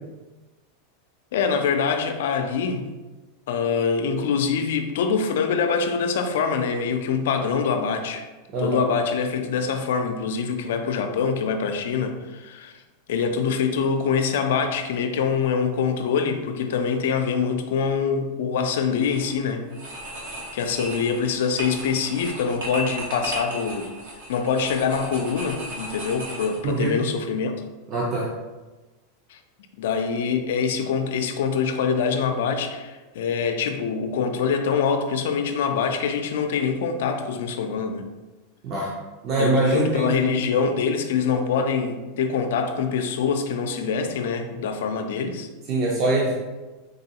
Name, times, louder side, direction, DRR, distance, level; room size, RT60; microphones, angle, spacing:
voice 1, 1.3-2.8 3.5-8.3 8.6-12.8 13.1-19.7 20.5-23.9 24.3-27.6 29.3-29.4 29.8-38.1 39.4-45.5, left 6 dB, 75° left, 7 dB, 0.4 m, -24 dB
voice 2, 8.5-8.8 26.6-27.0 27.9-28.3 38.6-38.9 39.2-40.2 45.7-46.3, right 2 dB, 40° right, -4 dB, 0.6 m, -23 dB
sound 1, 18.9-19.3 19.7-26.9, right 1 dB, 80° right, 1.1 m, -36 dB
3.9 x 3.0 x 2.8 m, 1.2 s
supercardioid pair, 150°, 0 cm